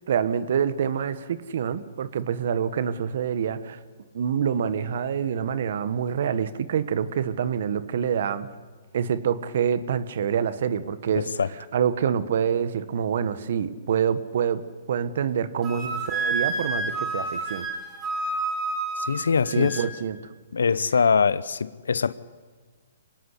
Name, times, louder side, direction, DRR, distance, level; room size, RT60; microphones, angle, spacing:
voice 1, 0.1-3.8 4.1-8.5 8.9-11.3 11.7-14.6 14.9-17.6 19.5-20.2, right 8 dB, 60° right, 1.5 m, -26 dB
voice 2, 11.2-11.5 19.0-19.9 20.5-22.1, left 5 dB, 85° left, 0.9 m, -23 dB
Wind instrument woodwind instrument, 15.6-19.9, right 3 dB, 20° right, 5.7 m, -29 dB
26.0 x 18.5 x 8.3 m
hypercardioid pair, 140°, 0 cm